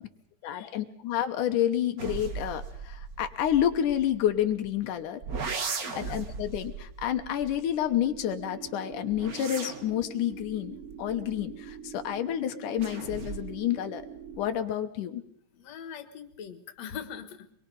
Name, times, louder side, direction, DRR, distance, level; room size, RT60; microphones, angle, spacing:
voice 1, 0.4-5.2 5.9-14.1 14.4-15.2, left 11 dB, 90° left, 7 dB, 2.7 m, -29 dB
sound 1, 2.0-4.7 5.2-8.3 8.9-11.9 12.8-13.7 14.0-14.6, right 5 dB, 40° right, 1.4 m, -39 dB
voice 2, 5.8-6.2 15.5-17.5, left 8 dB, 60° left, 7 dB, 2.7 m, -42 dB
sound 2, 7.9-14.5, right 8 dB, 60° right, 1.9 m, -44 dB
25.5 x 22.0 x 5.4 m, 0.62 s
omnidirectional pair, 3.5 m